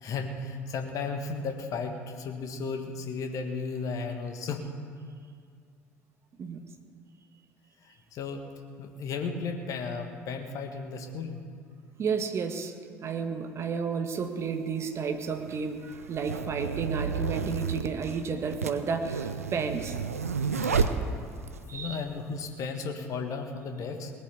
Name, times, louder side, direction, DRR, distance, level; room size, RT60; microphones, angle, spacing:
voice 1, 0.0-4.7 8.1-8.4 8.8-11.4 20.5-21.0 21.7-24.1, left 4 dB, 45° left, 5 dB, 1.7 m, -34 dB
voice 2, 12.0-12.7 13.0-20.0 21.7-22.0, right 5 dB, 35° right, 6 dB, 1.4 m, -32 dB
sound 1, 14.2-14.3 15.2-21.6, right 5 dB, 80° right, 0.6 m, -31 dB
19.0 x 8.2 x 7.0 m, 2.2 s
figure-of-eight pair, 60°, 8 cm